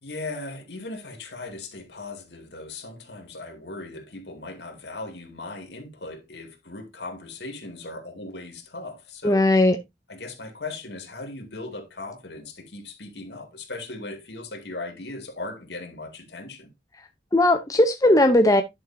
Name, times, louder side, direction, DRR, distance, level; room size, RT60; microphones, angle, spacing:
voice 1, 0.0-9.5 10.1-16.7, left 2 dB, 70° left, 2.3 m, -38 dB
voice 2, 9.2-9.8 17.3-18.6, left 1 dB, 20° left, 0.7 m, -18 dB
11.0 x 6.5 x 2.7 m
head